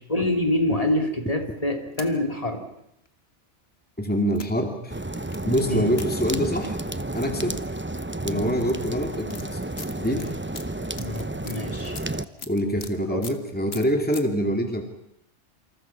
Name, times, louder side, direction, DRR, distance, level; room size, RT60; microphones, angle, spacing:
voice 1, 0.1-2.6 5.7-5.9 11.0-12.0 13.1-13.3, left 1 dB, 30° left, 4 dB, 3.2 m, -26 dB
sound 1, 1.6-2.1 3.0-3.1 4.3-4.5 5.3-5.4 6.0-6.1 7.6-7.7 7.9-8.2 8.9-12.9 13.2-13.4 13.7-14.2, left 4 dB, 60° left, 2.0 m, -40 dB
voice 2, 4.0-5.0 5.4-6.8 7.1-7.6 8.2-9.6 10.0-10.3 12.5-14.8, equal, 10° left, 4 dB, 2.5 m, -25 dB
sound 2, 4.9-12.3, right 2 dB, 10° right, 0.8 m, -31 dB
28.0 x 27.0 x 5.9 m, 0.77 s
omnidirectional pair, 1.2 m